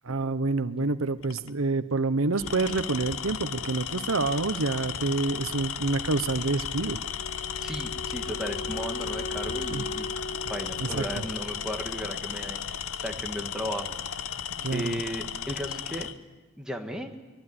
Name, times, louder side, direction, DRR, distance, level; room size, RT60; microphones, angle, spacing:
voice 1, 0.0-7.0 9.7-9.8 10.8-11.0 14.6-15.0, right 3 dB, 75° right, 12 dB, 1.0 m, -27 dB
Tools, 1.2-1.5 2.3-16.2, left 8 dB, 75° left, 0.8 m, -35 dB
Wind instrument woodwind instrument, 7.2-12.2, left 1 dB, 60° left, 4.2 m, -39 dB
voice 2, 7.6-10.1 10.5-14.3 14.7-16.1 16.6-17.1, equal, 5° right, 2 dB, 1.8 m, -35 dB
24.0 x 21.5 x 9.8 m, 1.3 s
head